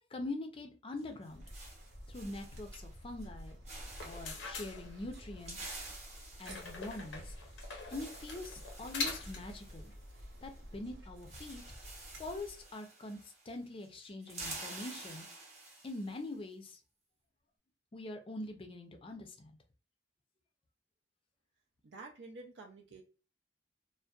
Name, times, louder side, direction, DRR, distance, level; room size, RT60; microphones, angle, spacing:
voice 1, 0.1-1.4 2.1-3.6 4.0-5.7 6.4-7.3 7.9-9.9 10.4-11.6 12.2-13.2 13.5-15.2 15.8-16.8 17.9-19.5, left 2 dB, 30° left, 4 dB, 0.4 m, -43 dB
sound 1, 1.0-2.9 3.2-3.4 3.7-4.5 5.1-10.6 10.8-10.9 11.2-13.6 13.8-16.2, right 2 dB, 35° right, 0.8 m, -50 dB
sound 2, 1.3-12.7, equal, 85° right, 0.8 m, -51 dB
sound 3, 3.8-5.4 6.4-9.6, left 4 dB, 85° left, 0.7 m, -43 dB
voice 2, 21.8-23.0, right 3 dB, 70° right, 1 dB, 0.4 m, -50 dB
2.5 x 2.1 x 2.3 m, 0.34 s
head